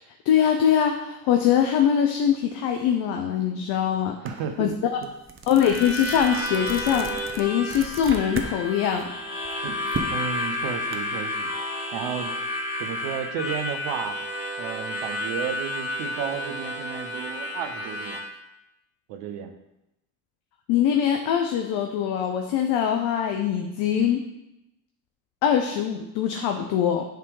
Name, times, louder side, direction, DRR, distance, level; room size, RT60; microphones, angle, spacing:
voice 1, 0.3-4.2 4.6-4.7 5.5-7.1 7.4-9.0 20.7-24.2 25.4-27.0, left 9 dB, 65° left, 4 dB, 0.7 m, -22 dB
voice 2, 4.2-4.7 5.0-5.1 9.6-11.5 11.9-12.3 12.8-14.2 14.6-18.2 19.1-19.5, right 8 dB, 75° right, 6 dB, 0.9 m, -33 dB
sound 1, 4.3-4.4 4.8-8.5 8.9-11.0, right 4 dB, 30° right, 0.9 m, -36 dB
Harmonica, 5.6-18.2, left 1 dB, 80° left, 1.7 m, -31 dB
8.0 x 3.4 x 4.8 m, 0.88 s
hypercardioid pair, 50°, 44 cm